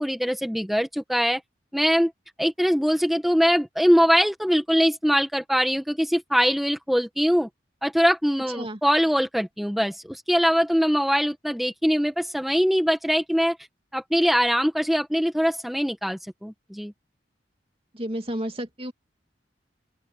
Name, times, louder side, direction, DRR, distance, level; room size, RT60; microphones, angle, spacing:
voice 1, 0.0-1.4 1.7-2.1 2.4-7.5 7.8-13.6 13.9-16.9, equal, ahead, 1.6 m, -22 dB
voice 2, 17.9-18.9, equal, 35° right, 2.7 m, -31 dB
open air
head